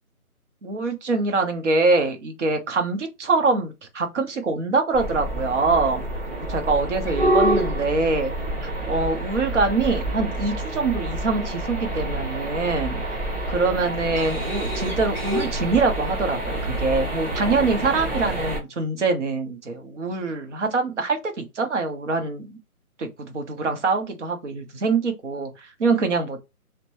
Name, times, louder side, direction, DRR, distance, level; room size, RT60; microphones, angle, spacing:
voice 1, 0.6-6.0 6.5-8.3 8.6-13.0 13.5-22.6 23.0-26.4, right 3 dB, 55° right, 0.9 m, -24 dB
sound 1, 4.9-18.6, right 1 dB, 10° right, 1.2 m, -27 dB
2.8 x 2.2 x 2.9 m
hypercardioid pair, 160°, 45 cm